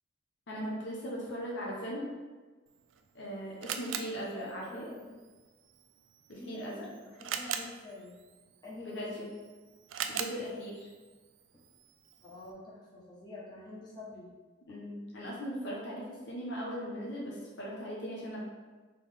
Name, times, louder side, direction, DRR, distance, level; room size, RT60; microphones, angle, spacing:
voice 1, 0.5-2.1 3.1-4.8 6.3-6.9 8.8-9.3 10.1-10.9 14.7-18.4, equal, 65° left, -4 dB, 0.8 m, -39 dB
Camera, 2.7-12.5, right 8 dB, 75° right, 0.3 m, -43 dB
voice 2, 4.3-5.2 6.4-8.1 8.6-9.1 12.2-14.3 14.7-14.8, left 2 dB, 20° left, -7 dB, 1.1 m, -47 dB
3.8 x 3.4 x 3.4 m, 1.3 s
head